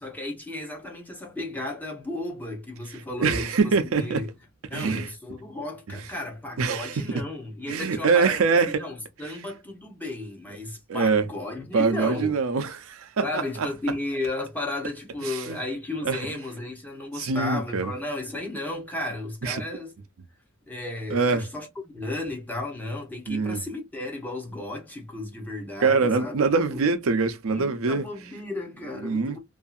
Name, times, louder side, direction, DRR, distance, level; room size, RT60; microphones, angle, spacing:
voice 1, 0.0-4.3 4.7-12.4 13.2-19.9 20.7-21.7 21.9-26.3 26.7-26.8 27.5-29.4, left 2 dB, 10° left, 0.8 m, -34 dB
voice 2, 3.2-4.2 4.7-5.1 6.6-7.0 7.7-8.8 10.9-11.3 11.7-13.7 15.2-15.6 16.0-16.2 17.2-17.9 19.4-19.6 21.1-21.5 23.3-23.6 25.8-28.1 29.0-29.4, right 4 dB, 70° right, 0.5 m, -24 dB
2.6 x 2.4 x 2.3 m
head